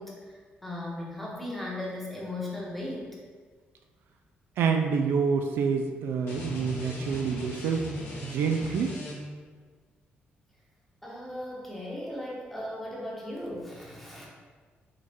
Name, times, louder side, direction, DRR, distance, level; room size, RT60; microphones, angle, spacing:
voice 1, 0.0-3.2 11.0-14.3, left 1 dB, 5° left, -4 dB, 0.7 m, -37 dB
voice 2, 4.6-7.9 8.2-9.0, right 5 dB, 70° right, 5 dB, 0.3 m, -27 dB
sound 1, 6.2-9.5, equal, 70° left, 1.0 m, -39 dB
3.8 x 3.2 x 3.4 m, 1.5 s
cardioid pair, 180°, 4 cm